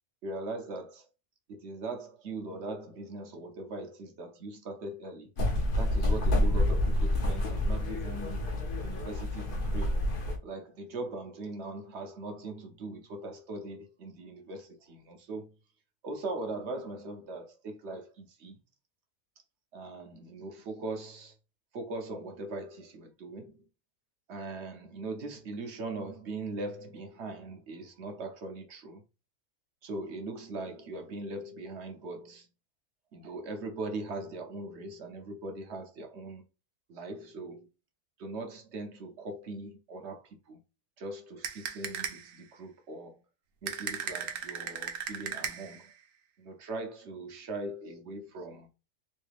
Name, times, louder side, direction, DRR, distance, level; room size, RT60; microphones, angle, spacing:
voice 1, 0.2-1.1 1.5-5.3 5.8-8.5 8.8-10.0 10.4-15.5 16.0-18.6 19.7-21.3 21.7-23.5 24.3-29.0 29.8-32.5 33.1-36.4 36.9-37.7 38.2-40.6 41.0-43.2 43.6-45.9 46.4-48.7, right 2 dB, 60° right, 0.8 m, -40 dB
sound 1, 5.4-10.4, left 1 dB, 50° left, 0.6 m, -28 dB
sound 2, 41.4-42.4 43.7-45.9, right 8 dB, 75° right, 1.1 m, -37 dB
3.1 x 2.7 x 3.3 m
omnidirectional pair, 1.6 m